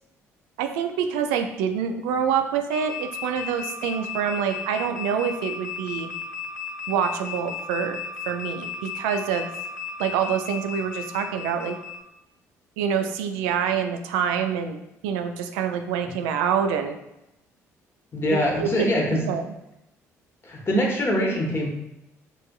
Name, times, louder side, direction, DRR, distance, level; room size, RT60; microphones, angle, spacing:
voice 1, 0.6-6.1 6.9-8.0 8.3-9.5 10.0-11.8 12.8-17.0 18.5-18.9 19.2-19.4, right 7 dB, 70° right, 6 dB, 0.3 m, -26 dB
sound 1, 2.7-12.0, left 5 dB, 10° left, 1.3 m, -35 dB
voice 2, 18.1-19.2 20.4-21.7, equal, 30° left, -1 dB, 1.0 m, -23 dB
4.7 x 2.5 x 2.3 m, 0.85 s
figure-of-eight pair, 45°, 8 cm